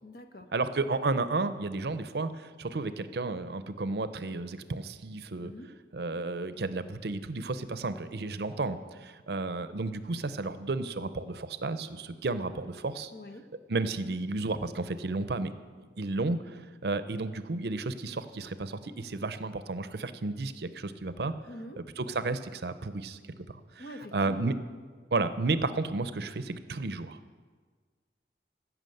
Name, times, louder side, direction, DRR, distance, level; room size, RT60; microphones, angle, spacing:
voice 1, 0.0-0.5 5.4-5.7 13.1-13.4 21.5-21.8 23.8-24.6, left 1 dB, 60° left, 6 dB, 1.0 m, -44 dB
voice 2, 0.5-5.5 5.9-13.1 13.7-15.5 16.0-21.3 22.0-23.2 23.5-23.8 24.1-24.5 25.1-27.2, right 3 dB, 65° right, 12 dB, 0.6 m, -32 dB
14.5 x 6.1 x 7.7 m, 1.5 s
head